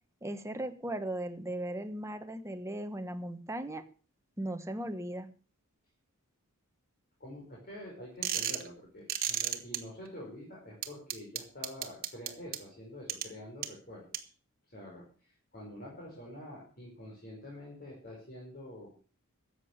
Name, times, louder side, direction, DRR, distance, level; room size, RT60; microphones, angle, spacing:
voice 1, 0.2-3.8 4.4-5.3, right 1 dB, 15° right, 7 dB, 1.3 m, -37 dB
voice 2, 7.2-14.3 14.7-18.9, left 1 dB, 45° left, -3 dB, 5.3 m, -47 dB
sound 1, 8.2-8.7 9.1-9.8 10.8-12.6 13.1-13.2 13.6-13.7 14.1-14.2, right 11 dB, 45° right, 1.6 m, -32 dB
14.0 x 8.5 x 6.6 m, 0.39 s
head